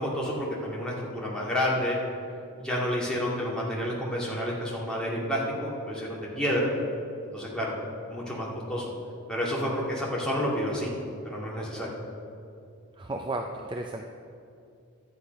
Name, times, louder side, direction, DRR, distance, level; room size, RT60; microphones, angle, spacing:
voice 1, 0.0-2.0 2.5-6.7 7.3-7.7 8.1-8.9 9.3-10.9 11.2-11.9, equal, 5° left, -5 dB, 2.1 m, -29 dB
voice 2, 13.0-14.1, right 2 dB, 20° right, 3 dB, 0.4 m, -33 dB
11.5 x 8.6 x 5.3 m, 2.5 s
head